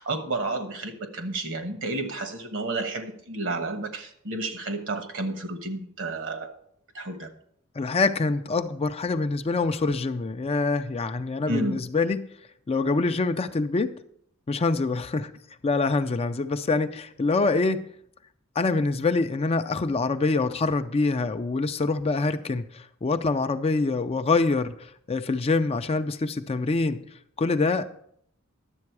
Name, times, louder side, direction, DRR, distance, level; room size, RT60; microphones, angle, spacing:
voice 1, 0.0-6.5 6.9-7.3 11.5-11.8, right 2 dB, 65° right, 7 dB, 1.2 m, -31 dB
voice 2, 7.8-12.3 12.7-13.9 14.5-15.3 15.6-17.8 18.6-27.0 27.4-28.0, left 3 dB, 30° left, 9 dB, 0.4 m, -25 dB
11.0 x 7.6 x 4.7 m, 0.68 s
head